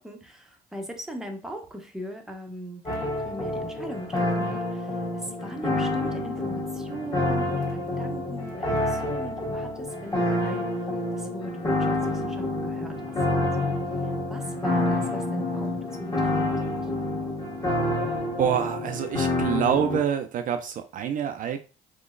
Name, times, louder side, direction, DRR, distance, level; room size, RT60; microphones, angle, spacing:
voice 1, 0.0-13.7 14.0-16.7, right 1 dB, 5° right, 3 dB, 0.7 m, -40 dB
sound 1, 2.9-20.0, left 1 dB, 20° left, 1.2 m, -28 dB
voice 2, 18.4-21.6, right 8 dB, 50° right, 7 dB, 0.4 m, -26 dB
3.7 x 2.9 x 2.5 m, 0.34 s
cardioid pair, 110°, 17 cm